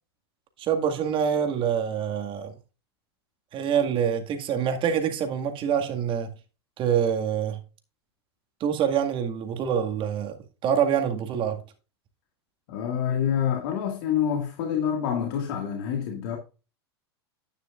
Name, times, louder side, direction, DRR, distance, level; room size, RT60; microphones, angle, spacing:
voice 1, 0.6-2.5 3.5-6.3 6.8-7.6 8.6-10.4 10.6-11.6, right 8 dB, 40° right, 1.9 m, -25 dB
voice 2, 12.7-16.4, left 8 dB, 60° left, 2.0 m, -27 dB
10.5 x 9.6 x 2.4 m
hypercardioid pair, 95°, 14 cm